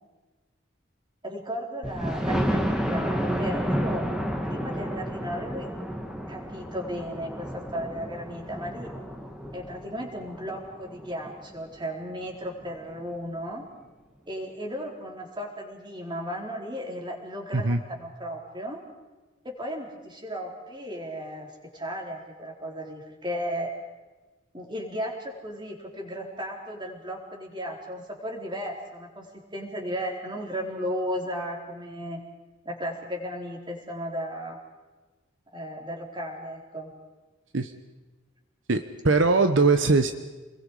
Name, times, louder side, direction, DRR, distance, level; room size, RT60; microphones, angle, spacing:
voice 1, 1.2-4.1 4.5-5.7 6.3-8.9 9.5-13.7 14.3-18.8 19.4-23.7 24.5-32.2 32.6-34.6 35.5-36.9, equal, 25° right, 0 dB, 4.3 m, -35 dB
Thunder, 1.8-11.6 12.1-12.2 12.6-12.7 13.0-13.1, equal, 5° right, 2.1 m, -31 dB
voice 2, 38.7-40.1, right 3 dB, 70° right, 8 dB, 1.1 m, -21 dB
29.5 x 21.5 x 5.0 m, 1.2 s
head